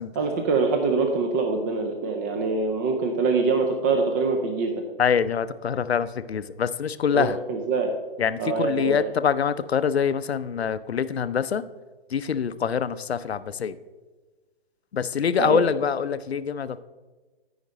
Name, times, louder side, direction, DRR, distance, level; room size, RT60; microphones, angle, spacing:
voice 1, 0.1-4.7 7.1-7.9 8.4-9.1 15.4-15.7, right 4 dB, 15° right, 4 dB, 0.4 m, -24 dB
voice 2, 5.0-7.4 8.2-11.6 12.1-13.8 14.9-16.8, left 7 dB, 85° left, 14 dB, 0.6 m, -25 dB
13.5 x 5.2 x 4.1 m, 1.3 s
hypercardioid pair, 135°, 31 cm